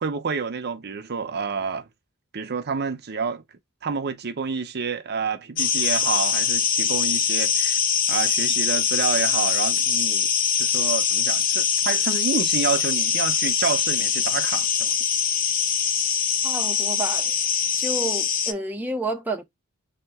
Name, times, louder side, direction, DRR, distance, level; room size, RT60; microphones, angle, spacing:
voice 1, 0.0-1.9 2.3-3.4 3.8-7.8 8.1-10.3 10.6-15.0, right 5 dB, 50° right, 0.7 m, -28 dB
sound 1, 5.6-18.5, left 7 dB, 40° left, 0.6 m, -23 dB
voice 2, 16.4-17.3 17.8-19.4, right 2 dB, 10° right, 0.7 m, -30 dB
3.6 x 2.9 x 3.5 m
head